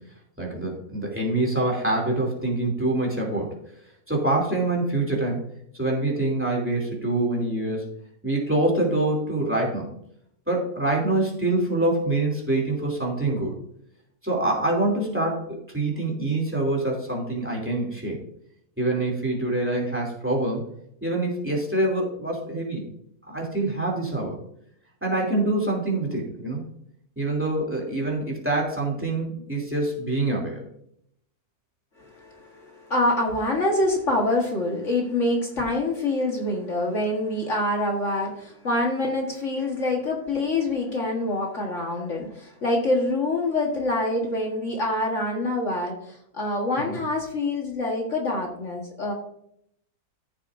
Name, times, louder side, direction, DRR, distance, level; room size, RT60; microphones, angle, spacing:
voice 1, 0.4-3.6 4.1-5.4 5.7-7.9 8.2-9.9 10.5-13.5 14.2-18.2 18.8-20.6 21.0-22.9 23.3-24.4 25.0-26.6 27.2-30.6 46.9-47.0, right 2 dB, 10° right, -1 dB, 2.7 m, -25 dB
voice 2, 32.0-49.1, left 2 dB, 50° left, 0 dB, 1.8 m, -26 dB
14.0 x 7.4 x 2.6 m, 0.71 s
omnidirectional pair, 1.6 m